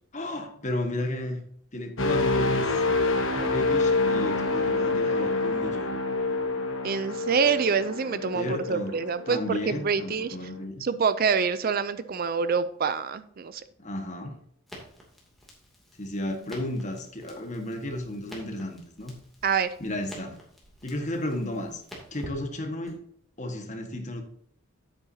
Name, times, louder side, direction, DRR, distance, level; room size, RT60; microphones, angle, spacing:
voice 1, 0.1-1.4 1.7-2.8 3.4-6.0 8.3-9.0 9.3-10.8 13.8-14.4 16.0-19.2 19.8-20.4 20.8-21.8 22.1-23.0 23.4-24.2, left 1 dB, 35° left, 4 dB, 1.5 m, -33 dB
sound 1, 2.0-9.8 10.2-10.5, left 3 dB, 60° left, 1.3 m, -27 dB
voice 2, 6.8-10.4 10.8-13.6 19.4-19.7, right 5 dB, 45° right, 14 dB, 0.4 m, -26 dB
Crackle, 14.7-23.0, equal, ahead, 2.5 m, -49 dB
9.9 x 8.4 x 2.8 m, 0.65 s
head